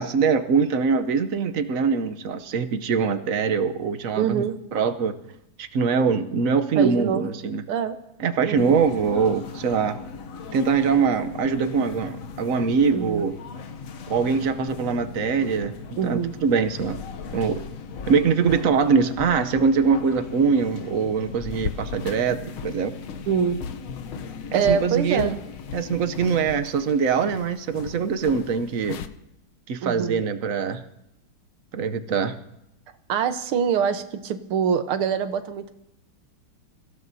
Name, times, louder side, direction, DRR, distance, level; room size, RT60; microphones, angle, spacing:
voice 1, 0.0-4.4 4.7-5.1 5.6-7.6 8.2-10.0 10.5-13.3 14.1-15.7 16.0-17.0 17.3-17.6 18.1-22.9 24.5-25.4 25.7-29.0 29.7-30.8 31.7-32.4, right 5 dB, 65° right, 9 dB, 0.8 m, -23 dB
voice 2, 4.2-4.6 6.8-7.3 7.7-8.0 8.4-8.8 12.9-13.2 16.0-16.3 23.3-23.6 24.5-25.4 29.8-30.2 33.1-35.7, right 7 dB, 85° right, 9 dB, 1.9 m, -24 dB
sound 1, 8.6-26.6, left 5 dB, 60° left, 0.9 m, -38 dB
sound 2, 21.5-29.1, left 8 dB, 75° left, 1.6 m, -38 dB
29.0 x 16.5 x 2.7 m, 0.84 s
omnidirectional pair, 2.4 m